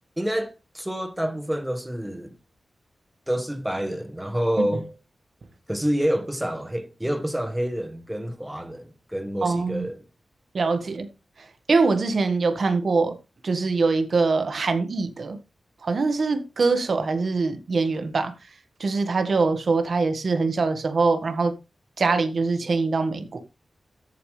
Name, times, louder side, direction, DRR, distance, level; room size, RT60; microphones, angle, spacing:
voice 1, 0.2-2.3 3.3-4.9 5.7-10.0, equal, 5° right, 1.5 m, -28 dB
voice 2, 9.4-9.8 10.5-11.1 11.7-13.2 13.4-15.4 15.8-18.3 18.8-21.5 22.0-23.4, right 4 dB, 55° right, 1.6 m, -23 dB
13.5 x 8.6 x 3.3 m
wide cardioid pair, 150°, 0 cm